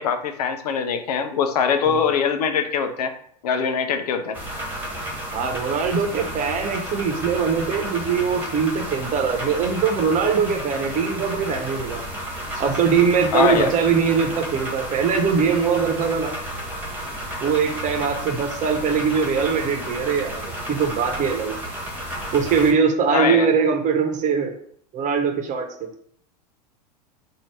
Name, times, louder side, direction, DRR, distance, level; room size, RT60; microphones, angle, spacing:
voice 1, 0.0-3.1 3.4-4.4 13.3-13.7 23.1-23.5, left 6 dB, 70° left, 8 dB, 0.6 m, -22 dB
sound 1, 4.3-22.7, right 1 dB, 10° right, 1.8 m, -32 dB
voice 2, 5.3-12.0 12.5-16.3 17.4-21.6 22.3-24.5 24.9-25.9, right 6 dB, 35° right, 4 dB, 1.0 m, -22 dB
4.3 x 2.7 x 4.6 m, 0.64 s
hypercardioid pair, 90°, 21 cm